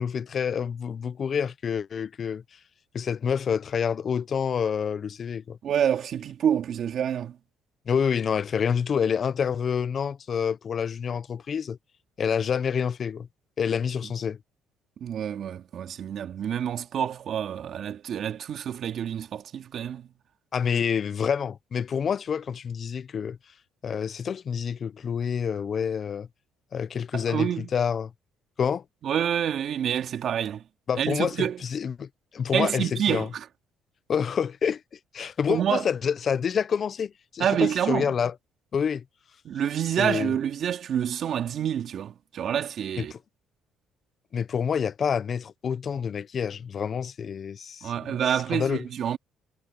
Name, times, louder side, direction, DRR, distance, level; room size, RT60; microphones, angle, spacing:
voice 1, 0.0-2.4 2.9-5.6 7.9-11.8 12.2-13.3 13.6-14.4 20.5-23.4 23.8-26.3 26.7-28.1 28.6-28.8 30.9-31.4 31.6-33.3 34.1-34.8 35.1-38.3 38.7-39.0 40.0-40.4 43.0-43.2 44.3-48.8, left 7 dB, 40° left, 0.7 m, -28 dB
voice 2, 5.6-7.4 15.0-20.1 27.1-27.7 29.0-30.6 31.0-31.6 32.5-33.4 35.5-35.9 37.4-38.1 39.4-43.1 47.8-49.2, right 9 dB, 50° right, 2.5 m, -27 dB
cardioid pair, 120°, 0 cm